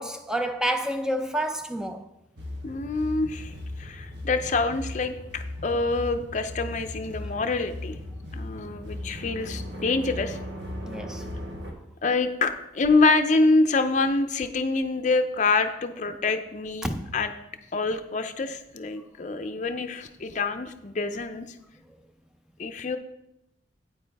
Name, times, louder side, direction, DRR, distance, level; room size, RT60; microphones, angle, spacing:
voice 1, 0.0-2.1 10.8-11.2 16.8-17.1, right 1 dB, 5° right, 0.5 m, -29 dB
sound 1, 2.4-11.7, left 1 dB, 75° right, 1.5 m, -37 dB
voice 2, 2.6-8.0 8.3-10.4 12.0-17.3 17.7-21.5 22.6-23.0, left 3 dB, 45° left, 0.6 m, -26 dB
8.7 x 8.5 x 3.5 m
head